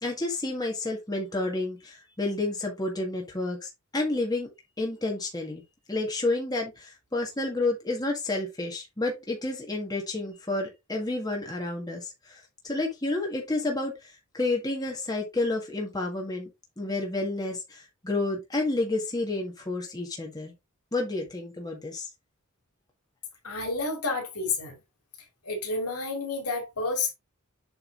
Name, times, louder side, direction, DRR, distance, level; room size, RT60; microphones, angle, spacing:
voice 1, 0.0-4.5 4.8-5.6 5.9-16.5 16.8-20.5 20.9-22.1, left 2 dB, 15° left, 1.7 m, -30 dB
voice 2, 23.4-24.7 25.4-27.1, left 3 dB, 85° left, 2.7 m, -30 dB
7.9 x 3.8 x 3.7 m
head